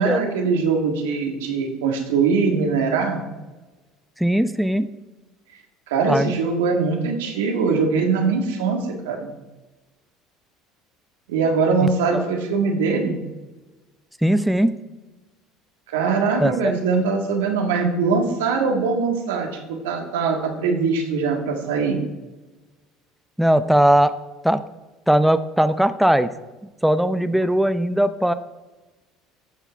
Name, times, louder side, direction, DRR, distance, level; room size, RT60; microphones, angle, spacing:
voice 1, 0.0-3.2 5.9-9.3 11.3-13.2 15.9-22.0, right 4 dB, 80° right, 3 dB, 1.7 m, -22 dB
voice 2, 4.2-4.9 6.1-6.3 11.8-12.2 14.2-14.8 16.4-16.7 23.4-24.1 24.4-24.6 25.1-26.3 26.8-28.3, right 1 dB, ahead, 12 dB, 0.7 m, -19 dB
14.0 x 5.8 x 4.5 m, 1.2 s
hypercardioid pair, 70°, 0 cm